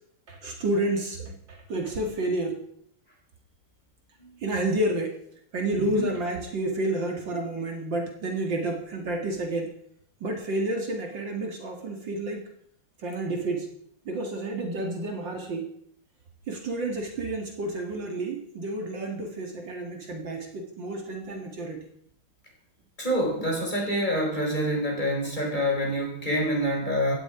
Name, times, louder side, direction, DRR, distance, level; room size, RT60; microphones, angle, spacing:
voice 1, 0.3-2.6 4.4-5.2 5.5-9.7 10.2-12.5 13.0-13.7 14.1-15.7 16.5-21.8, right 2 dB, 60° right, 3 dB, 2.7 m, -30 dB
voice 2, 23.0-27.2, equal, 20° left, 0 dB, 4.5 m, -26 dB
16.0 x 12.0 x 4.9 m, 0.68 s
omnidirectional pair, 2.4 m